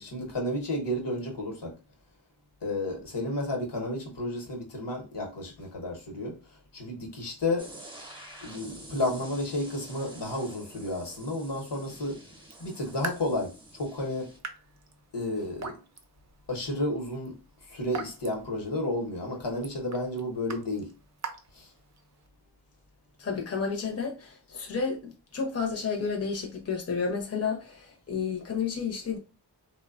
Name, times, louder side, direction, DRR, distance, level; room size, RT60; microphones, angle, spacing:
voice 1, 0.0-1.7 2.6-7.7 8.4-12.2 12.6-14.3 15.1-15.7 16.5-17.3 17.6-20.9 21.5-21.7, left 1 dB, 75° left, 0.9 m, -32 dB
sound 1, 7.6-14.4, right 1 dB, 10° right, 0.8 m, -48 dB
Raindrop / Drip, 12.4-22.3, right 3 dB, 40° right, 0.5 m, -44 dB
voice 2, 23.2-29.2, left 5 dB, 35° left, 0.7 m, -31 dB
3.0 x 2.1 x 2.4 m
wide cardioid pair, 55°, 42 cm